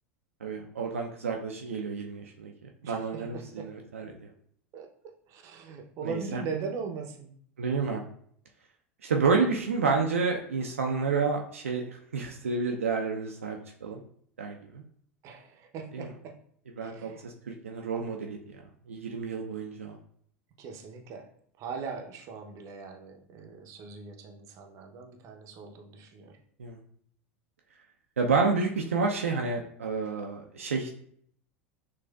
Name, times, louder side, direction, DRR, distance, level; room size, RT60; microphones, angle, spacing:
voice 1, 0.4-4.3 6.0-6.4 7.6-8.0 9.0-14.0 14.4-14.8 15.9-16.1 16.8-20.0 26.6-26.8 28.2-30.9, right 4 dB, 80° right, 1 dB, 0.5 m, -30 dB
voice 2, 2.8-3.7 4.7-4.9 5.3-7.3 15.2-16.3 16.8-17.3 20.6-21.3 21.6-26.4, right 5 dB, 45° right, 3 dB, 0.7 m, -40 dB
6.1 x 2.4 x 2.3 m, 0.63 s
figure-of-eight pair, 80°, 7 cm